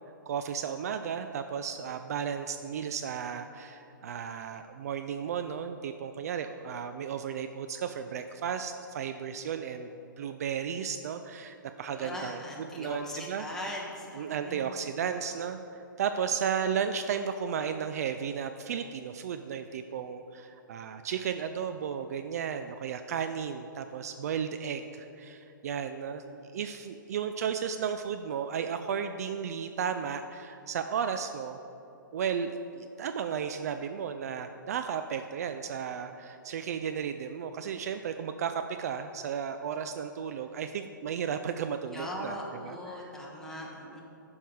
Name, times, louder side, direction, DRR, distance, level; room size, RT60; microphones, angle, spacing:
voice 1, 0.3-9.9 10.2-13.5 14.2-15.6 16.0-31.6 32.1-42.4 42.6-43.1 43.8-44.0, right 7 dB, 45° right, 8 dB, 0.4 m, -34 dB
voice 2, 11.9-14.8 41.9-44.0, left 1 dB, 5° left, -4 dB, 1.4 m, -40 dB
11.0 x 5.4 x 4.7 m, 2.9 s
figure-of-eight pair, 120°, 11 cm